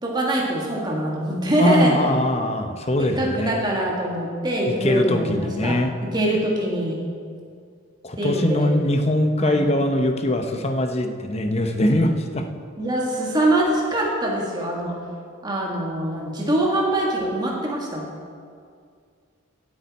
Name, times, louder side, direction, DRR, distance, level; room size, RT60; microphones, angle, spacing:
voice 1, 0.0-2.0 3.0-7.0 8.2-8.7 9.4-9.6 12.8-15.0 15.4-18.1, right 1 dB, 20° right, -2 dB, 1.8 m, -23 dB
voice 2, 1.6-3.6 4.7-5.9 8.0-12.5, left 1 dB, 30° left, 6 dB, 0.8 m, -22 dB
17.0 x 8.8 x 4.2 m, 2.2 s
head